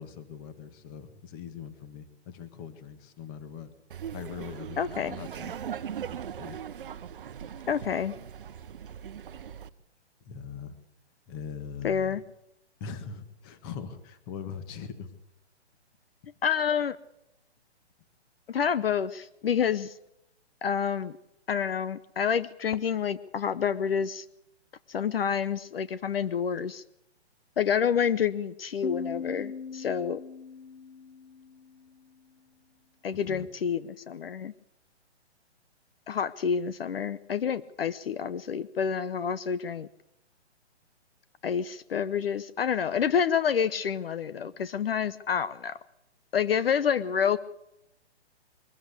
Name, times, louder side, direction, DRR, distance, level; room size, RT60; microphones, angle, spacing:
voice 1, 0.0-3.7 3.9-5.5 6.4-6.6 10.2-10.8 11.3-12.2 12.8-15.1 33.1-33.5 44.4-44.5, left 7 dB, 20° left, 11 dB, 1.6 m, -41 dB
Laughter, 3.9-9.7, right 8 dB, 50° right, 1.0 m, -39 dB
voice 2, 4.8-5.1 7.7-8.1 11.8-12.2 16.4-17.0 18.5-19.9 20.6-21.1 21.5-24.2 24.9-26.8 27.6-30.2 33.0-33.8 34.1-34.5 36.1-39.9 41.4-45.8 46.3-47.4, left 7 dB, 60° left, 15 dB, 0.9 m, -28 dB
Piano, 28.8-32.3, left 5 dB, 90° left, 1.2 m, -40 dB
22.5 x 14.5 x 8.3 m, 0.85 s
hypercardioid pair, 165°, 34 cm